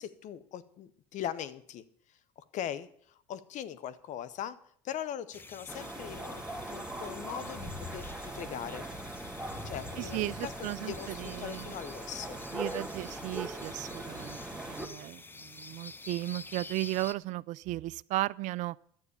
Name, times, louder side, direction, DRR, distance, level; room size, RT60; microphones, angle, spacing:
voice 1, 0.0-4.6 4.8-8.9 9.6-12.4, left 10 dB, 55° left, 0.9 m, -41 dB
sound 1, 5.3-17.1, left 3 dB, 15° left, 0.6 m, -49 dB
sound 2, 5.7-14.9, right 1 dB, 5° right, 1.7 m, -41 dB
voice 2, 10.0-11.8 12.5-18.8, right 17 dB, 55° right, 0.4 m, -35 dB
11.5 x 8.1 x 7.1 m
hypercardioid pair, 80°, 15 cm